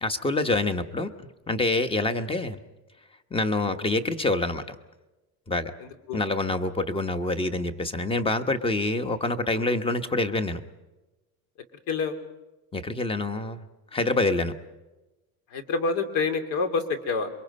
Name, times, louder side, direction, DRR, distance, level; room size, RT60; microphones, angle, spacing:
voice 1, 0.0-1.1 1.5-2.6 3.3-4.8 5.5-5.7 6.1-10.6 12.7-13.7 13.9-14.5, left 2 dB, 15° left, 10 dB, 1.1 m, -26 dB
voice 2, 5.8-6.2 9.5-9.8 11.9-12.1 15.5-17.3, left 4 dB, 65° left, 7 dB, 2.7 m, -28 dB
27.5 x 23.5 x 5.4 m, 1.1 s
cardioid pair, 150°, 39 cm